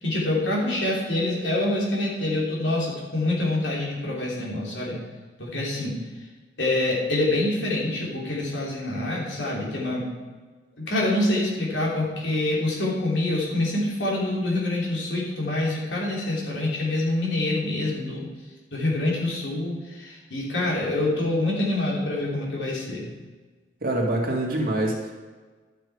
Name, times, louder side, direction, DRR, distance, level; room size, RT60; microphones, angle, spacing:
voice 1, 0.0-5.0 5.4-6.0 6.6-10.1 10.8-18.3 18.7-23.0, left 1 dB, 90° left, -4 dB, 3.1 m, -26 dB
voice 2, 23.8-25.1, right 1 dB, 55° right, -1 dB, 2.2 m, -25 dB
12.0 x 6.8 x 4.7 m, 1.4 s
head